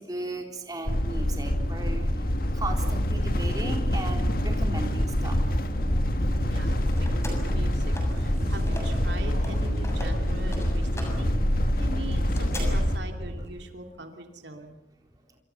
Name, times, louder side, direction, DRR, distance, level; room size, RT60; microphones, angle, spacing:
voice 1, 0.0-2.1 2.5-5.4, right 2 dB, 20° right, 2 dB, 3.9 m, -36 dB
sound 1, 0.9-13.0, equal, 50° left, 1.7 m, -26 dB
sound 2, 4.1-13.5, equal, 40° right, 7.4 m, -36 dB
voice 2, 6.4-7.8 8.1-11.3 11.8-14.8, right 2 dB, 70° right, 4 dB, 2.9 m, -42 dB
sound 3, 6.5-9.1 9.3-12.6, left 1 dB, 15° left, 7.0 m, -41 dB
27.5 x 26.5 x 7.0 m, 0.99 s
head